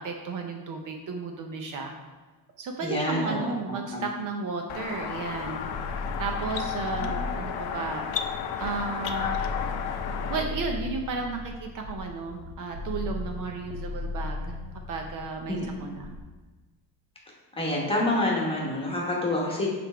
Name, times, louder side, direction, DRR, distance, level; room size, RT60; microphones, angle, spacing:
voice 1, 0.0-1.9 2.6-5.8 6.2-8.1 8.6-9.4 10.3-14.6 14.9-16.2, right 4 dB, 50° right, 3 dB, 0.7 m, -33 dB
voice 2, 2.8-3.4 3.7-4.0 7.0-7.1 15.5-15.7 17.5-19.8, left 1 dB, 15° left, -3 dB, 1.1 m, -27 dB
sound 1, 4.7-10.4, left 8 dB, 70° left, 0.6 m, -32 dB
sound 2, 5.6-16.2, left 2 dB, 65° right, 1.7 m, -37 dB
7.0 x 3.4 x 4.4 m, 1.3 s
cardioid pair, 165°, 41 cm